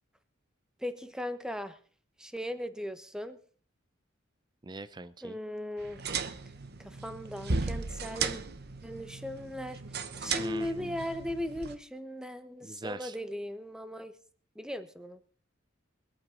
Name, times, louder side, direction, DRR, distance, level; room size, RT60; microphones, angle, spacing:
voice 1, 0.8-1.8 2.2-3.4 5.2-6.0 6.8-8.4 8.8-9.8 10.2-14.1 14.5-15.2, left 1 dB, 5° right, 10 dB, 1.1 m, -38 dB
voice 2, 4.6-5.4 10.4-10.9 12.6-13.2, right 2 dB, 20° right, 14 dB, 0.5 m, -41 dB
sound 1, 5.8-11.8, right 4 dB, 55° right, 1.0 m, -36 dB
23.5 x 9.0 x 3.9 m, 0.42 s
head